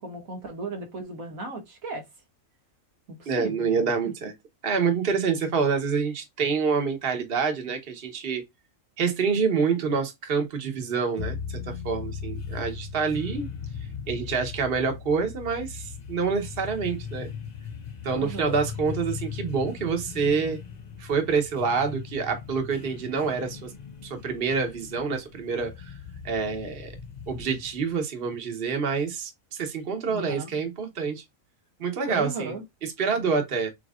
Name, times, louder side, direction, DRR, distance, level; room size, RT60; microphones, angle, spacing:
voice 1, 0.0-2.0 3.1-3.7 18.1-18.6 30.1-30.5 32.1-32.6, right 2 dB, 85° right, 2.1 m, -36 dB
voice 2, 3.3-4.3 4.6-8.4 9.0-13.5 14.1-17.3 18.0-20.6 21.0-23.7 24.0-26.0 26.2-26.9 27.3-31.2 31.8-33.7, right 5 dB, 45° right, 1.3 m, -27 dB
sound 1, 11.2-28.0, left 6 dB, 40° left, 0.8 m, -38 dB
7.2 x 3.0 x 2.4 m
omnidirectional pair, 1.4 m